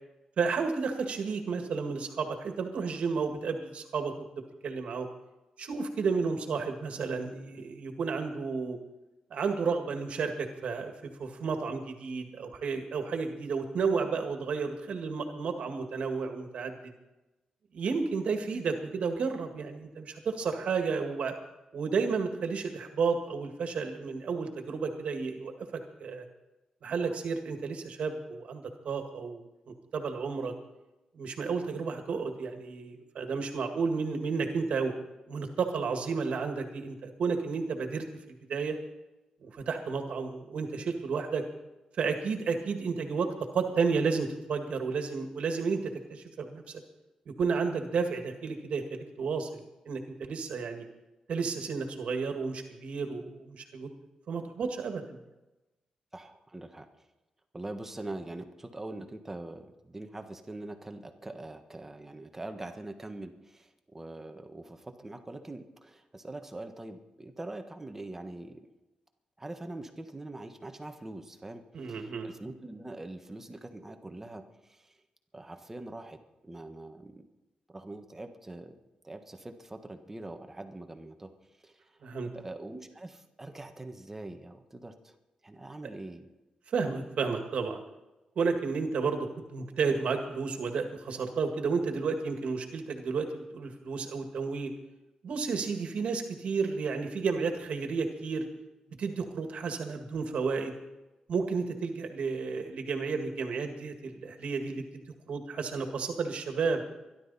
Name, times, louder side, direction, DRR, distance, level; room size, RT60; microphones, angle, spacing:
voice 1, 0.4-4.3 4.6-5.1 5.6-8.8 9.3-10.9 11.2-16.7 17.7-21.3 21.7-26.2 26.8-30.5 31.1-34.9 35.3-38.0 38.5-38.8 39.4-41.4 42.0-46.8 47.3-49.6 49.9-50.8 51.3-53.9 54.3-55.2 71.7-72.3 82.0-82.3 86.7-87.8 88.4-94.7 95.2-98.5 99.0-100.8 101.3-106.8, right 5 dB, 70° right, 5 dB, 1.9 m, -32 dB
voice 2, 56.1-56.9 57.5-68.7 69.4-74.9 75.3-77.3 77.7-78.8 79.0-81.3 81.6-82.0 82.3-85.1 85.4-86.3, right 2 dB, 15° right, 6 dB, 1.4 m, -43 dB
23.5 x 12.0 x 4.2 m, 1.0 s
wide cardioid pair, 115°, 2 cm